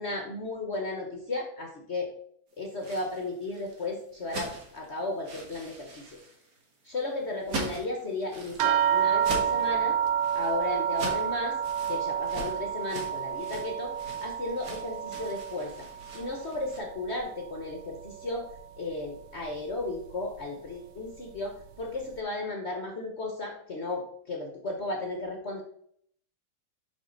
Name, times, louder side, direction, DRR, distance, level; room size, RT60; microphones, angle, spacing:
voice 1, 0.0-2.1 2.6-6.2 6.8-10.0 10.3-11.6 11.9-13.9 14.2-15.9 16.1-18.4 18.8-25.6, left 2 dB, 60° left, 2 dB, 0.7 m, -34 dB
sound 1, 2.6-16.8, right 2 dB, 45° right, 1.8 m, -42 dB
sound 2, 8.6-17.4 17.7-18.6 19.4-19.5 19.9-20.0, right 9 dB, 80° right, 1.5 m, -30 dB
6.2 x 5.7 x 3.8 m, 0.65 s
omnidirectional pair, 2.4 m